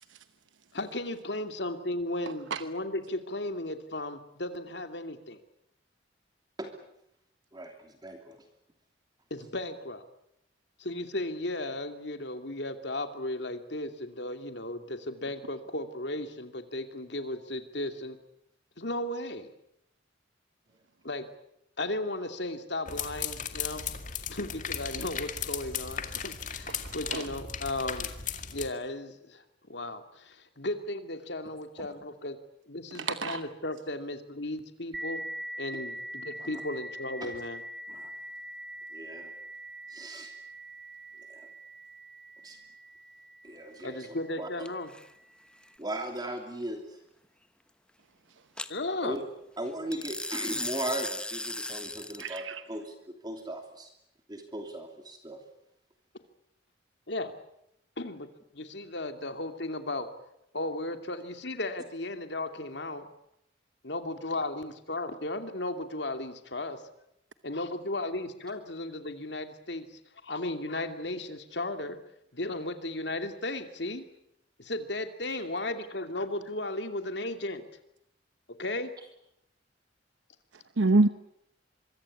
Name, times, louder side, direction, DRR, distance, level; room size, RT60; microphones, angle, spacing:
voice 1, 0.7-5.4 9.3-10.0 10.8-18.2 18.8-19.5 21.0-21.3 21.8-23.9 24.3-28.1 28.5-32.4 32.7-35.2 35.6-37.6 43.8-44.9 48.7-49.2 57.1-57.3 58.0-58.3 58.5-60.1 60.5-63.1 63.8-66.8 67.4-69.9 70.2-72.0 72.3-74.0 74.6-77.6 78.6-78.9, left 2 dB, 65° left, 7 dB, 2.6 m, -35 dB
voice 2, 7.5-8.4 31.8-31.9 36.4-36.6 37.2-37.3 37.9-38.1 38.9-39.3 39.9-40.3 41.3-41.4 42.4-42.6 43.4-44.0 44.4-44.7 45.8-47.0 49.0-49.2 49.6-53.9 54.3-55.4 75.3-75.4, right 1 dB, 20° right, 4 dB, 2.9 m, -38 dB
sound 1, 22.9-28.7, left 8 dB, 45° left, 2.1 m, -36 dB
voice 3, 33.0-33.4 52.2-52.6 80.8-81.1, right 2 dB, 90° right, 11 dB, 1.0 m, -25 dB
sound 2, 34.9-44.2, right 1 dB, 55° right, 2.3 m, -43 dB
Fishing reel, 44.7-45.0 48.6-48.7 49.9-52.4, left 2 dB, 5° left, 1.1 m, -36 dB
25.0 x 24.0 x 8.6 m, 0.78 s
head